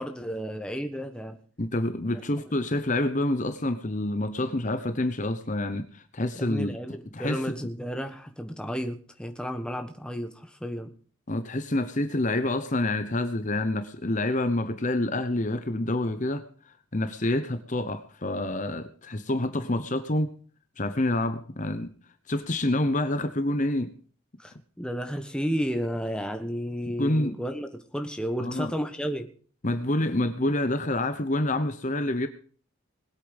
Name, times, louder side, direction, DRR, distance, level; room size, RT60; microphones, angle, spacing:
voice 1, 0.0-1.4 2.1-2.2 6.3-10.9 24.4-29.3, equal, 5° left, 1.4 m, -32 dB
voice 2, 1.6-6.7 7.1-7.5 11.3-20.3 20.8-21.9 22.3-23.9 27.0-27.3 28.4-28.7 29.6-32.3, left 1 dB, 35° left, 1.0 m, -27 dB
20.5 x 8.6 x 5.3 m
head